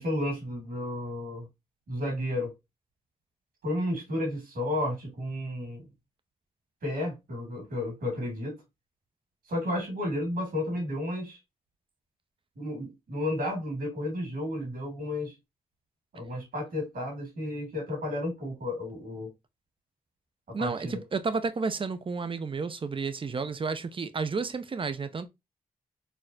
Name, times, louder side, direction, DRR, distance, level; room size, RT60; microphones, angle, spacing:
voice 1, 0.0-1.5 1.9-2.5 3.6-5.8 6.8-8.6 9.5-11.4 12.6-15.3 16.1-19.3 20.6-21.0, left 1 dB, 75° right, 2.2 m, -32 dB
voice 2, 20.5-25.3, right 4 dB, 35° right, 0.5 m, -31 dB
4.1 x 2.0 x 2.6 m
cardioid pair, 50°, 16 cm